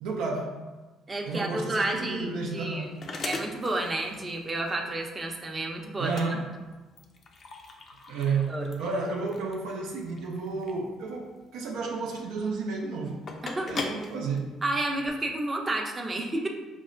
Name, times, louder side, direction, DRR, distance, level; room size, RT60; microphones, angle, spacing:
voice 1, 0.0-0.6 1.3-3.1 6.0-6.5 8.1-13.3 13.7-14.5, right 4 dB, 75° right, 0 dB, 0.4 m, -32 dB
voice 2, 1.1-3.0 3.2-6.2 8.5-8.7 13.6-13.7 14.6-16.5, right 2 dB, 30° right, 1 dB, 0.6 m, -31 dB
sound 1, 1.8-15.1, left 3 dB, 50° left, 0.5 m, -41 dB
5.2 x 2.0 x 2.5 m, 1.2 s
hypercardioid pair, 60°, 0 cm